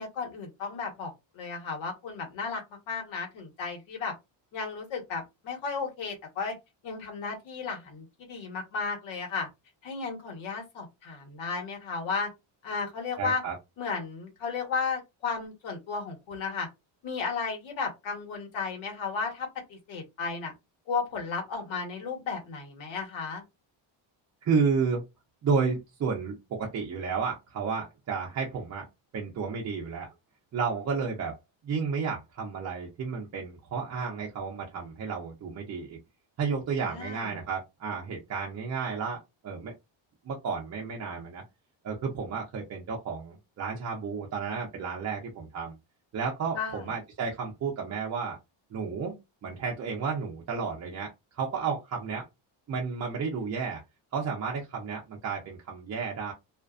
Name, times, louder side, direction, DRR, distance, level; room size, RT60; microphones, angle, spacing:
voice 1, 0.0-2.6 2.9-4.1 4.5-6.5 6.8-9.5 9.8-12.3 12.6-13.4 13.8-16.7 17.0-20.5 20.9-23.4 36.8-37.3 46.5-46.9, left 5 dB, 70° left, 1.2 m, -34 dB
voice 2, 13.2-13.6 24.5-25.0 25.4-28.8 29.1-30.1 30.5-31.4 31.6-36.0 36.4-39.7 40.2-41.4 41.8-45.7 46.1-48.4 48.7-52.3 52.7-53.8 54.1-56.3, right 5 dB, 35° right, 0.5 m, -32 dB
2.4 x 2.1 x 2.4 m
cardioid pair, 160°, 48 cm